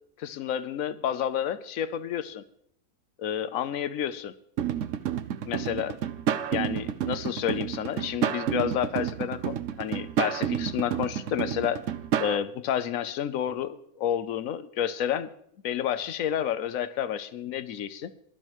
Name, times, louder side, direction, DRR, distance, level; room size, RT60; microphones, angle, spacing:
voice 1, 0.2-2.4 3.2-4.3 5.5-6.0 6.5-11.8 12.2-15.3 15.6-18.1, left 10 dB, 85° left, 14 dB, 1.1 m, -30 dB
sound 1, 4.6-12.4, right 9 dB, 70° right, 1.0 m, -30 dB
21.5 x 12.0 x 3.1 m, 0.70 s
omnidirectional pair, 1.4 m